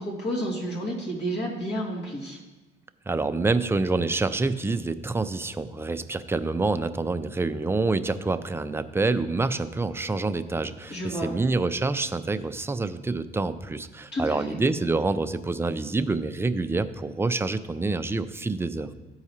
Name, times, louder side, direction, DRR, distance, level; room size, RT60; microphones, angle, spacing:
voice 1, 0.0-2.4 10.9-11.3 14.1-14.6, equal, 60° left, -3 dB, 2.2 m, -30 dB
voice 2, 3.1-18.9, right 3 dB, 10° right, 11 dB, 0.4 m, -27 dB
13.5 x 4.8 x 2.8 m, 1.1 s
cardioid pair, 90°, 20 cm